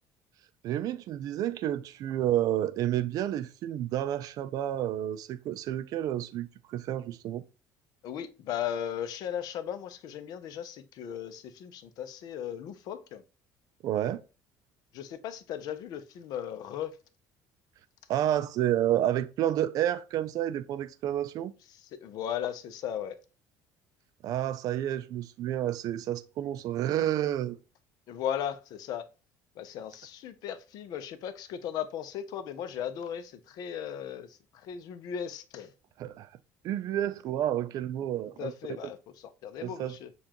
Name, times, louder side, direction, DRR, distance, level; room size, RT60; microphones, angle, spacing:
voice 1, 0.6-7.4 13.8-14.2 18.1-21.5 24.2-27.6 36.0-36.3 36.6-38.5 39.6-40.0, right 12 dB, 60° right, 0.4 m, -30 dB
voice 2, 8.0-13.2 14.9-17.0 21.7-23.2 28.1-29.1 29.6-35.7 38.4-40.1, left 9 dB, 65° left, 0.7 m, -37 dB
6.9 x 2.4 x 2.9 m
cardioid pair, 125°, 7 cm